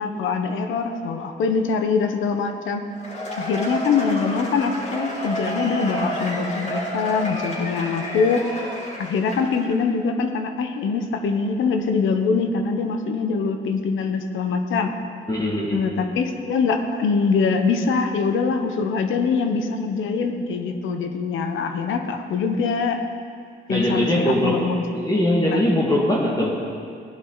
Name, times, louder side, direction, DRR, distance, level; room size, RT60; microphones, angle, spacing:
voice 1, 0.0-2.8 3.4-8.7 9.0-14.9 15.7-23.0 23.7-24.8 25.5-25.6, left 5 dB, 75° left, 6 dB, 1.1 m, -23 dB
Cheering / Applause / Crowd, 2.9-9.7, equal, 35° left, 4.1 m, -30 dB
voice 2, 15.3-15.8 23.7-26.5, left 1 dB, 20° left, -4 dB, 2.0 m, -21 dB
17.0 x 11.0 x 4.0 m, 2.3 s
cardioid pair, 90°, 20 cm